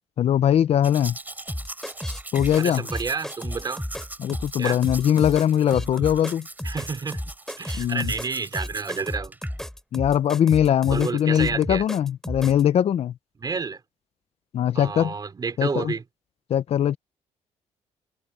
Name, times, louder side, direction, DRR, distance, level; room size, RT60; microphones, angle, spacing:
voice 1, 0.2-1.2 2.3-2.8 4.2-6.5 7.8-8.1 9.9-13.1 14.5-15.1 15.6-15.9 16.5-17.0, left 10 dB, 60° left, 0.7 m, -21 dB
Domestic sounds home sounds, 0.8-9.6 10.2-10.3, right 2 dB, 15° right, 5.2 m, -41 dB
sound 1, 1.5-12.6, left 1 dB, 5° left, 2.8 m, -33 dB
voice 2, 2.6-3.9 4.6-4.8 6.6-7.2 7.6-9.3 10.9-11.8 13.4-13.8 14.7-16.0, right 5 dB, 35° right, 3.4 m, -30 dB
cardioid pair, 100°, 12 cm